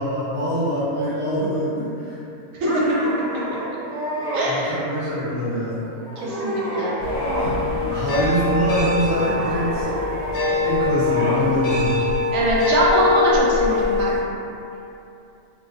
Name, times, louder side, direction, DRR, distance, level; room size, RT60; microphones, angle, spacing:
voice 1, 0.0-2.2 4.4-5.8 7.9-9.9 10.5-12.1, equal, 30° right, -13 dB, 0.6 m, -24 dB
sound 1, 2.6-4.5 5.1-5.6 6.0-7.6 7.9-8.6 9.1-11.5, equal, 45° left, 0.8 m, -29 dB
voice 2, 4.3-4.8 6.2-7.0 12.3-14.1, right 1 dB, 70° right, -6 dB, 0.9 m, -21 dB
sound 2, 7.0-14.2, left 3 dB, 75° left, 1.0 m, -23 dB
2.5 x 2.1 x 2.4 m, 2.8 s
omnidirectional pair, 1.5 m